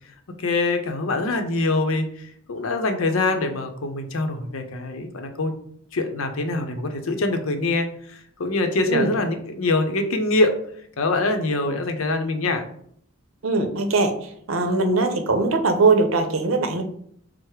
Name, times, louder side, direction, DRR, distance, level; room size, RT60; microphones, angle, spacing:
voice 1, 0.4-5.5 5.9-10.5 11.0-12.7, left 2 dB, 80° left, 6 dB, 0.7 m, -24 dB
voice 2, 13.4-14.1 14.5-16.8, right 3 dB, 75° right, 6 dB, 0.7 m, -20 dB
4.7 x 2.1 x 4.6 m, 0.64 s
head